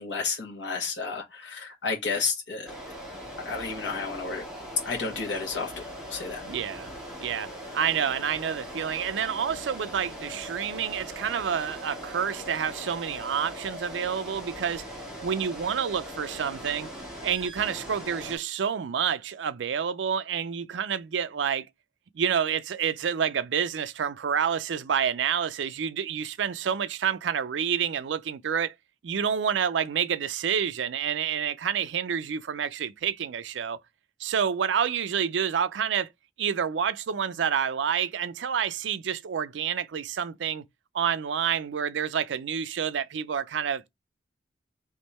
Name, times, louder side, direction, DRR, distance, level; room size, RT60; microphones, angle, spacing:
voice 1, 0.0-2.7 3.4-4.5 4.8-5.7 6.1-6.4, left 4 dB, 75° left, 1.2 m, -31 dB
sound 1, 2.7-18.4, equal, 5° right, 1.6 m, -40 dB
voice 2, 6.4-6.9 7.2-7.5 7.7-14.9 15.2-16.9 17.2-21.7 22.1-28.7 29.0-33.8 34.2-36.1 36.4-40.6 40.9-43.9, right 7 dB, 85° right, 0.4 m, -28 dB
3.5 x 3.1 x 4.1 m
head